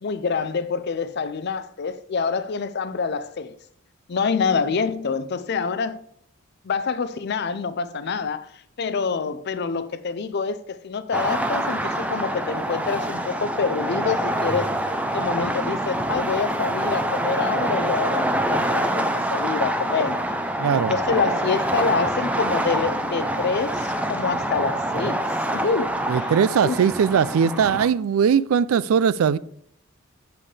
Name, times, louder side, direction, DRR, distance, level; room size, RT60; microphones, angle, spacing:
voice 1, 0.0-3.6 4.1-6.0 6.6-14.7 15.1-20.2 20.7-25.2 25.5-26.3 26.6-26.8, left 5 dB, 50° left, 0.5 m, -26 dB
sound 1, 11.1-27.9, right 1 dB, 5° right, 0.5 m, -26 dB
voice 2, 20.6-20.9 26.1-29.4, right 7 dB, 75° right, 0.3 m, -20 dB
7.6 x 6.9 x 3.3 m
head